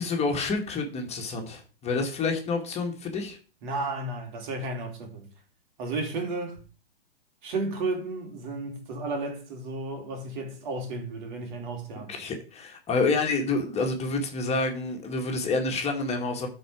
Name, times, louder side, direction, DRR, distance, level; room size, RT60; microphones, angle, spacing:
voice 1, 0.0-3.4 12.1-16.5, left 3 dB, 20° left, 2.0 m, -28 dB
voice 2, 3.6-5.3 5.8-6.6 7.4-12.2, right 2 dB, 50° right, 3.3 m, -33 dB
13.0 x 4.6 x 5.0 m
figure-of-eight pair, 110°, 30 cm